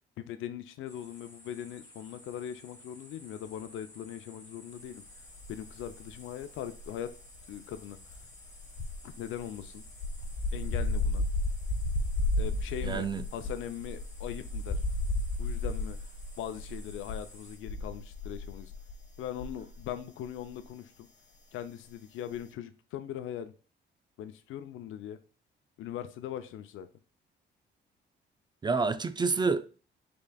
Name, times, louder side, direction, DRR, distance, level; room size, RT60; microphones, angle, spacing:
voice 1, 0.2-5.0 5.5-7.1 7.5-8.0 9.0-9.8 10.5-11.2 12.4-14.8 15.4-16.0 16.4-18.7 19.2-21.1 21.5-23.5 24.2-25.2 25.8-26.9, left 10 dB, 85° left, 0.6 m, -40 dB
sound 1, 0.9-17.6, left 1 dB, 15° left, 2.2 m, -54 dB
sound 2, 5.3-6.2 6.4-20.0 20.2-20.5, left 2 dB, 60° left, 1.3 m, -33 dB
voice 2, 12.8-13.2 28.6-29.8, right 4 dB, 20° right, 0.4 m, -28 dB
5.4 x 3.8 x 2.3 m
cardioid pair, 90°, 20 cm